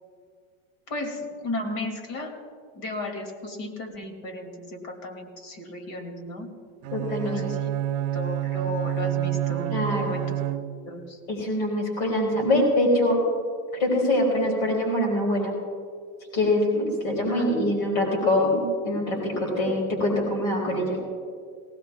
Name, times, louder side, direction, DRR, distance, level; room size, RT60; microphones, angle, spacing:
voice 1, 0.9-2.4 2.7-6.5 7.2-10.4 10.8-11.2 17.3-17.5, left 2 dB, 55° left, 5 dB, 2.5 m, -35 dB
Bowed string instrument, 6.8-11.0, right 12 dB, 75° right, 0.7 m, -28 dB
voice 2, 6.9-7.4 9.7-10.2 11.3-13.2 13.7-15.5 16.3-21.0, left 1 dB, 80° left, -1 dB, 4.3 m, -24 dB
20.0 x 18.0 x 2.3 m, 2.1 s
supercardioid pair, 115°, 41 cm